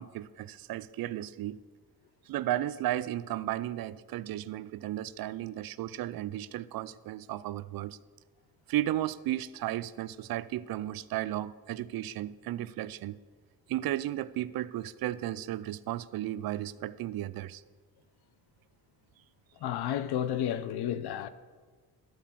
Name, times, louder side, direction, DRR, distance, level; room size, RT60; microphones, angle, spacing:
voice 1, 0.0-1.6 2.3-8.0 8.7-13.2 13.7-17.6, right 13 dB, 65° right, 0.5 m, -34 dB
voice 2, 19.6-21.3, left 10 dB, 70° left, 0.7 m, -31 dB
12.0 x 4.6 x 7.4 m
cardioid pair, 105°, 39 cm